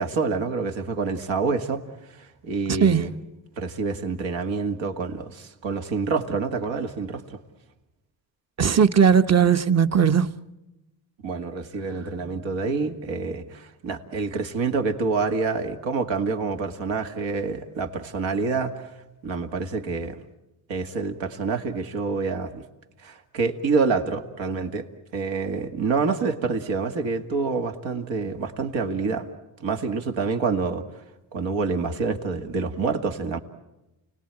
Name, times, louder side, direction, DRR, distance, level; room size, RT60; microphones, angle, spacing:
voice 1, 0.0-1.8 2.1-3.1 3.6-7.4 11.2-18.9 19.2-20.2 20.7-22.6 23.0-24.9 25.1-29.3 29.6-30.8 31.3-33.4, right 4 dB, 80° right, 2.2 m, -27 dB
voice 2, 2.7-3.1 8.6-10.3, right 7 dB, 35° right, 1.0 m, -18 dB
29.5 x 19.0 x 8.9 m
cardioid pair, 90°, 44 cm